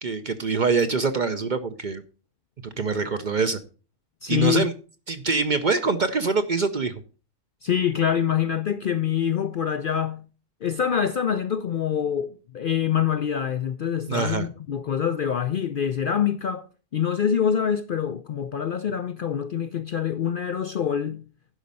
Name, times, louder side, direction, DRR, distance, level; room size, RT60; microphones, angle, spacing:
voice 1, 0.0-2.0 2.6-3.6 4.3-4.7 5.1-7.0 14.1-14.5, right 4 dB, 55° right, 0.5 m, -24 dB
voice 2, 4.2-4.7 7.6-10.2 10.6-21.2, left 8 dB, 85° left, 0.4 m, -25 dB
11.5 x 5.2 x 5.4 m
omnidirectional pair, 1.5 m